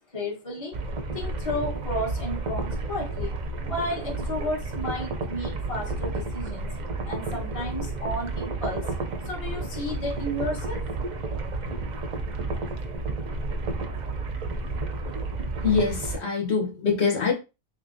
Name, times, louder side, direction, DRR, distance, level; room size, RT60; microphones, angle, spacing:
voice 1, 0.1-0.7 1.1-3.3 3.7-6.8 7.0-8.9 9.2-10.8, left 1 dB, 30° left, 0.9 m, -32 dB
sound 1, 0.7-16.2, right 3 dB, 50° right, 0.6 m, -31 dB
voice 2, 15.6-17.3, left 5 dB, 75° left, 1.2 m, -24 dB
3.7 x 2.8 x 2.5 m
omnidirectional pair, 1.1 m